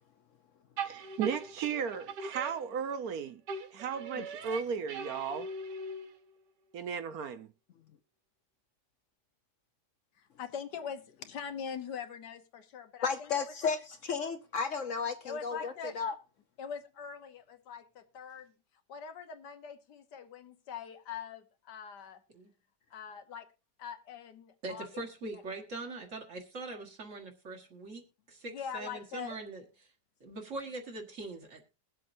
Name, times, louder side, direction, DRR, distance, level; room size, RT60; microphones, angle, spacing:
voice 1, 0.8-3.4 3.7-5.5 6.7-7.5, right 7 dB, 65° right, 1.2 m, -35 dB
sound 1, 0.8-3.1 3.5-6.3, right 3 dB, 85° right, 1.6 m, -41 dB
voice 2, 10.2-13.4 15.2-15.9 16.6-18.5 18.9-22.2 22.9-23.5 23.8-24.9 25.3-25.4 28.5-29.4, left 7 dB, 80° left, 1.7 m, -43 dB
voice 3, 13.0-16.1, left 5 dB, 60° left, 0.9 m, -33 dB
voice 4, 24.6-29.9 30.2-31.6, right 2 dB, 50° right, 1.9 m, -42 dB
21.5 x 7.6 x 2.7 m
omnidirectional pair, 1.8 m